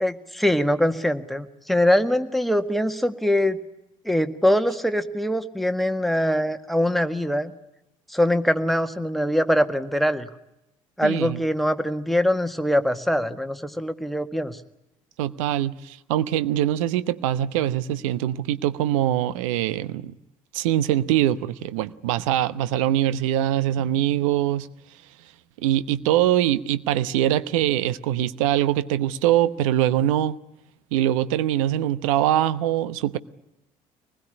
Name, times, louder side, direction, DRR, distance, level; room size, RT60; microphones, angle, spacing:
voice 1, 0.0-3.6 4.1-7.5 8.1-10.3 11.0-14.6, equal, ahead, 1.8 m, -23 dB
voice 2, 11.0-11.4 15.2-20.1 20.5-24.7 25.6-30.4 30.9-33.2, right 12 dB, 75° right, 1.0 m, -23 dB
24.5 x 20.0 x 9.9 m
hypercardioid pair, 55°, 17 cm